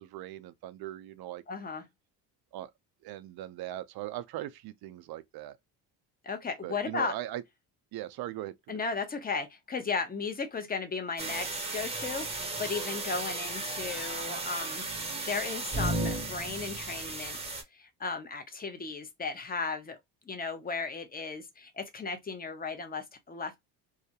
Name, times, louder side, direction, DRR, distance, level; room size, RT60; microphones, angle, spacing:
voice 1, 0.0-1.4 2.5-2.7 3.0-5.6 6.6-7.4 7.9-8.8, right 14 dB, 60° right, 0.5 m, -39 dB
voice 2, 1.5-1.8 6.2-7.1 8.7-17.4 17.7-20.0 20.3-23.6, left 4 dB, 20° left, 0.6 m, -35 dB
sound 1, 11.2-17.6, right 2 dB, 15° right, 0.7 m, -35 dB
2.3 x 2.1 x 2.7 m
cardioid pair, 90°, 42 cm